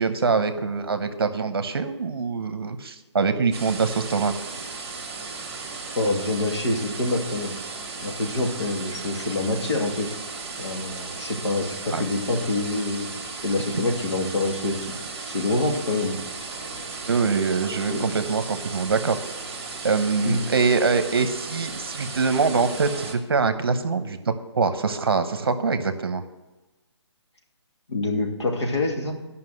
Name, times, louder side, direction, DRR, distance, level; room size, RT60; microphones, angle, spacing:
voice 1, 0.0-4.3 11.9-12.0 17.1-19.2 19.8-26.2, right 4 dB, 55° right, 10 dB, 0.9 m, -24 dB
sound 1, 3.5-23.1, right 4 dB, 25° right, 1.7 m, -36 dB
voice 2, 6.0-7.5 8.0-10.1 10.6-13.1 13.4-14.9 15.2-16.1 17.9-18.0 20.2-20.4 27.9-29.1, left 2 dB, 70° left, 1 dB, 2.4 m, -26 dB
11.5 x 5.7 x 7.8 m, 1.1 s
hypercardioid pair, 175°, 15 cm